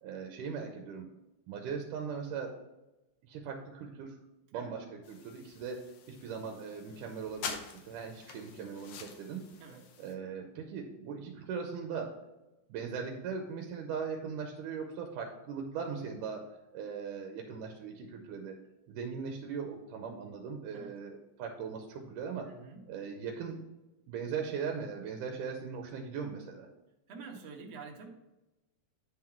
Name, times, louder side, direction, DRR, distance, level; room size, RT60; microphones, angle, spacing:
voice 1, 0.0-1.1 1.5-2.5 3.2-4.2 4.5-5.8 6.1-9.5 10.0-12.1 12.7-16.5 16.7-18.6 18.9-22.5 22.9-23.6 24.1-26.7, right 6 dB, 85° right, 2 dB, 2.3 m, -39 dB
sound 1, 5.0-10.2, left 6 dB, 70° left, 2.0 m, -46 dB
voice 2, 22.4-22.8 27.1-28.1, right 5 dB, 60° right, 0 dB, 2.0 m, -47 dB
9.9 x 3.9 x 4.4 m, 1.0 s
omnidirectional pair, 3.6 m